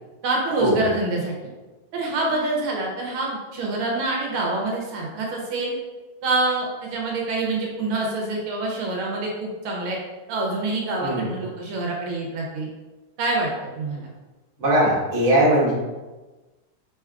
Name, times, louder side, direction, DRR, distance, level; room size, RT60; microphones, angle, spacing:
voice 1, 0.2-1.5 1.9-5.7 6.2-10.0 10.3-12.7 13.2-14.1, right 2 dB, 85° right, -1 dB, 1.6 m, -26 dB
voice 2, 14.6-15.7, right 1 dB, 40° right, -7 dB, 1.5 m, -19 dB
4.5 x 3.8 x 2.4 m, 1.2 s
omnidirectional pair, 2.3 m